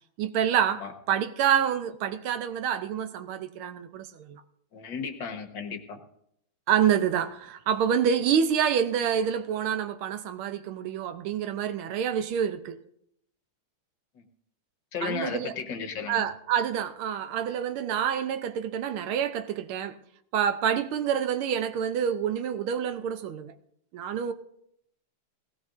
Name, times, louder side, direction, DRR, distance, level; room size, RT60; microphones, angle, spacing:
voice 1, 0.2-4.4 6.7-12.8 15.0-15.5 16.1-19.9 20.3-23.5 23.9-24.3, right 8 dB, 80° right, 1.6 m, -27 dB
voice 2, 4.7-6.0 14.2-14.3 14.9-16.3, left 6 dB, 60° left, 1.9 m, -34 dB
19.0 x 17.5 x 2.6 m
omnidirectional pair, 2.4 m